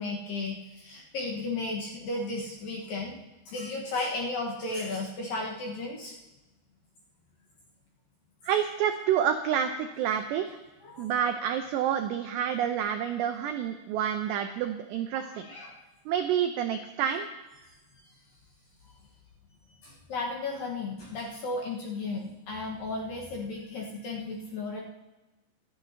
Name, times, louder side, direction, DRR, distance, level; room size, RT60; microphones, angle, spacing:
voice 1, 0.0-3.2 3.5-6.1 10.8-11.1 15.1-15.8 19.8-24.8, left 3 dB, 65° left, -2 dB, 2.5 m, -34 dB
voice 2, 8.4-10.6 11.0-15.5 16.1-17.3, right 9 dB, 85° right, 6 dB, 2.4 m, -28 dB
25.5 x 10.5 x 2.9 m, 1.1 s
omnidirectional pair, 5.7 m